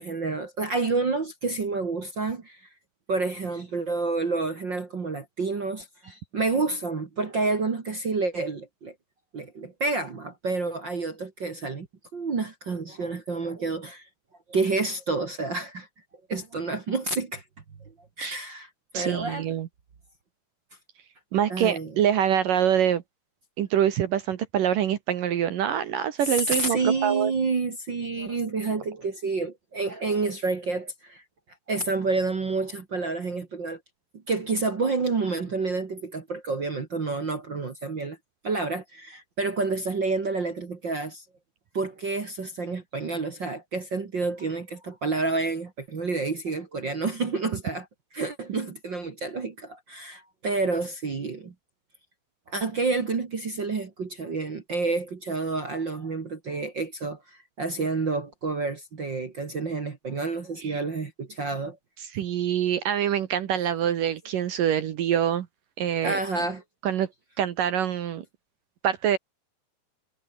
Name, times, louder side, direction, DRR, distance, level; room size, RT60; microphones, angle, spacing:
voice 1, 0.0-2.6 3.1-8.9 9.3-11.9 12.1-14.1 14.5-15.9 16.3-17.4 18.2-18.7 18.9-19.5 21.5-22.0 26.2-31.2 31.7-33.8 34.3-38.2 38.4-41.2 41.7-47.9 48.1-51.5 52.5-61.8 66.0-66.6, right 3 dB, 50° right, 1.3 m, -29 dB
voice 2, 18.9-19.7 21.3-23.0 23.6-27.3 60.6-60.8 62.1-65.5 65.8-66.2 66.8-67.1 67.4-68.2 68.8-69.2, right 9 dB, 65° right, 2.2 m, -25 dB
omnidirectional pair, 5.6 m